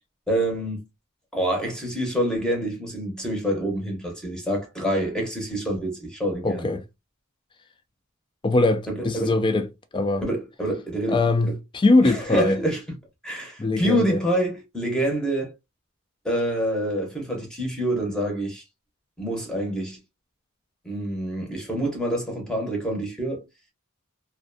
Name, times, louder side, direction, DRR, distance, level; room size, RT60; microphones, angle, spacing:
voice 1, 0.3-0.8 1.3-6.7 8.9-9.3 10.2-11.5 12.0-12.8 13.2-15.5 16.2-18.6 19.2-20.0 20.8-23.4, right 1 dB, 5° left, 0.8 m, -26 dB
voice 2, 6.4-6.8 8.4-9.7 9.9-10.2 11.1-12.6 13.6-14.2, left 2 dB, 25° left, 0.4 m, -21 dB
2.5 x 2.2 x 2.5 m
head